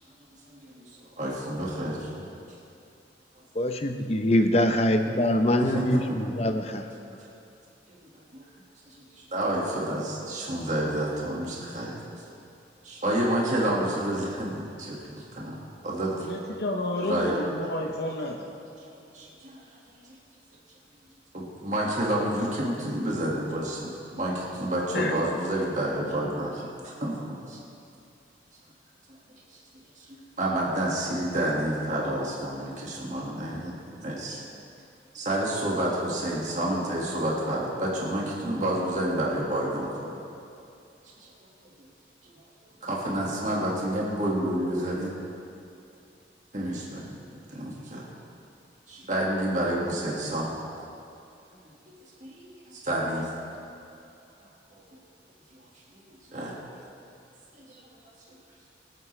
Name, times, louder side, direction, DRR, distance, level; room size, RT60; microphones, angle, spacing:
voice 1, 0.5-2.2 5.6-6.0 7.1-7.2 7.9-8.0 8.3-8.5 8.9-12.0 12.8-15.6 15.8-16.4 17.1-17.4 18.8-19.7 21.3-26.7 27.0-27.1 27.5-27.6 29.5-29.6 30.0-34.4 35.1-40.1 41.2-41.3 41.8-41.9 42.2-42.3 42.8-45.1 46.5-47.1 47.5-48.0 48.9-50.5 52.2-53.3 55.9-56.0 56.3-56.5 57.7-57.9, right 1 dB, 45° right, -4 dB, 1.9 m, -29 dB
voice 2, 3.5-6.9, left 1 dB, 35° left, 6 dB, 0.8 m, -24 dB
voice 3, 16.2-18.5 24.9-25.2, left 1 dB, 65° left, 1 dB, 0.8 m, -30 dB
23.0 x 9.3 x 3.3 m, 2.6 s
head